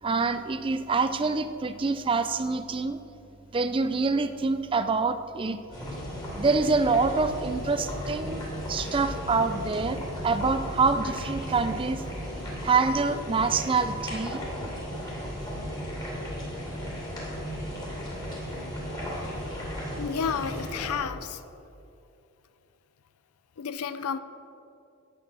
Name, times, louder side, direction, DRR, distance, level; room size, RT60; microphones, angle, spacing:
voice 1, 0.0-3.0 3.5-5.6 6.4-12.0 12.6-15.0, right 4 dB, 25° right, 11 dB, 0.4 m, -26 dB
sound 1, 5.7-20.9, equal, 20° left, 2.8 m, -35 dB
voice 2, 20.0-21.4 23.6-24.2, left 6 dB, 85° left, 14 dB, 0.5 m, -31 dB
10.5 x 8.1 x 6.1 m, 2.6 s
head